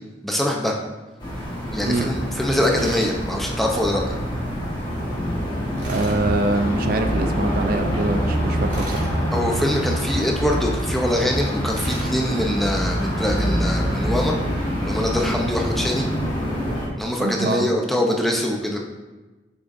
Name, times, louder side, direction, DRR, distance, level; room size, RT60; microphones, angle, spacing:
voice 1, 0.2-0.8 1.7-4.2 9.3-14.4 14.8-16.1 17.0-18.8, left 1 dB, ahead, -1 dB, 0.7 m, -23 dB
sound 1, 1.2-16.9, equal, 25° left, 1.5 m, -25 dB
voice 2, 1.8-2.1 5.9-9.1 17.2-17.7, right 2 dB, 50° right, 6 dB, 0.4 m, -24 dB
Tools, 2.8-3.2 5.8-6.2 8.7-9.1 11.7-12.2, right 1 dB, 70° right, 2.2 m, -36 dB
8.0 x 6.1 x 2.6 m, 1.2 s
head